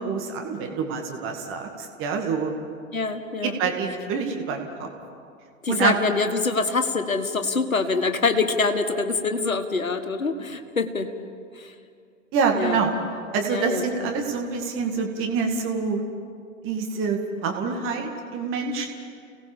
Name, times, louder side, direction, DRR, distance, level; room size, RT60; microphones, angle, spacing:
voice 1, 0.0-2.5 3.4-4.9 5.7-5.9 12.3-12.9 13.3-16.0 16.6-18.9, right 5 dB, 30° right, 3 dB, 2.2 m, -26 dB
voice 2, 2.9-3.6 5.6-11.1 11.6-11.7 12.5-12.8 13.5-14.1, left 4 dB, 80° left, 8 dB, 1.6 m, -25 dB
29.5 x 18.5 x 5.3 m, 2.3 s
figure-of-eight pair, 100°, 40 cm